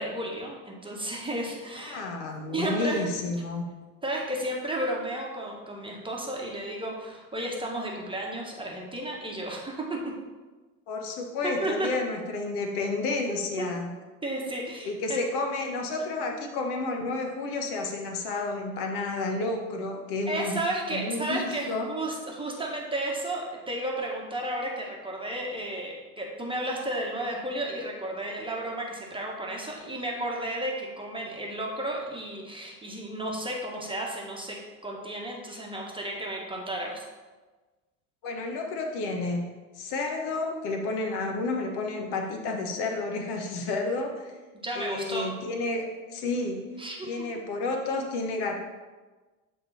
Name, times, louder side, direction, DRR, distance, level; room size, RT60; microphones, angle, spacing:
voice 1, 0.0-2.0 2.5-3.1 4.0-10.2 11.4-12.0 13.3-13.8 14.2-15.2 20.3-37.0 44.5-45.3 46.8-47.1, right 1 dB, 10° right, -2 dB, 1.4 m, -33 dB
voice 2, 1.8-3.7 10.9-13.9 14.8-20.6 20.9-21.9 38.2-39.5 39.8-44.3 44.7-46.6 47.0-48.5, left 3 dB, 65° left, 3 dB, 1.2 m, -31 dB
7.6 x 3.7 x 4.1 m, 1.3 s
supercardioid pair, 90°, 42 cm